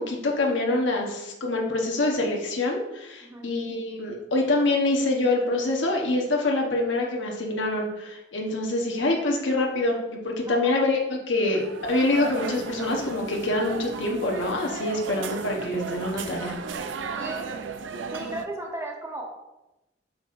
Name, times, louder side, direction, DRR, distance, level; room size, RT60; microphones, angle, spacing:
voice 1, 0.0-11.0 11.3-16.5 18.2-18.3, left 2 dB, 80° left, 0 dB, 1.1 m, -25 dB
voice 2, 10.5-10.9 17.1-17.5 18.1-19.3, right 1 dB, 15° right, 0 dB, 1.0 m, -36 dB
sound 1, 11.4-18.5, right 4 dB, 85° right, 0.5 m, -35 dB
7.7 x 6.1 x 2.6 m, 0.97 s
head